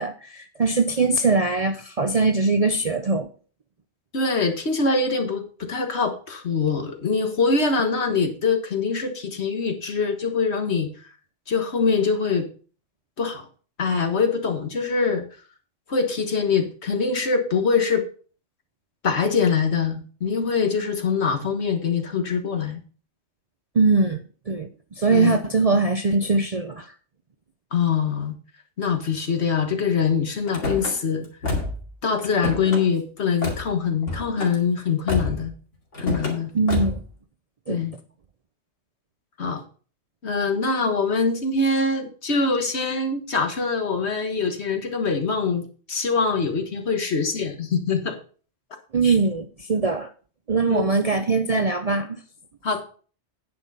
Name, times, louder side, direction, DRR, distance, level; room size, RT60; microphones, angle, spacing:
voice 1, 0.0-3.3 23.8-24.2 24.5-24.7 25.0-26.9 36.5-37.0 37.7-37.8 48.9-50.1 50.5-52.2, right 3 dB, 45° right, 0.5 m, -21 dB
voice 2, 4.1-10.9 11.5-12.5 13.2-13.5 13.8-15.2 15.9-18.1 19.0-22.8 25.1-25.4 27.7-28.4 28.8-31.3 32.0-35.5 36.0-36.5 37.7-37.9 39.4-39.6 40.2-48.2 49.0-49.2 50.7-50.9 52.6-52.8, left 5 dB, 60° left, 1.7 m, -23 dB
Car / Slam, 30.5-30.9 31.4-31.9 32.2-32.8 33.4-33.6 34.0-34.5 35.1-35.5 35.9-36.4 36.7-37.1, left 3 dB, 75° left, 2.8 m, -28 dB
9.6 x 6.1 x 5.4 m
omnidirectional pair, 1.3 m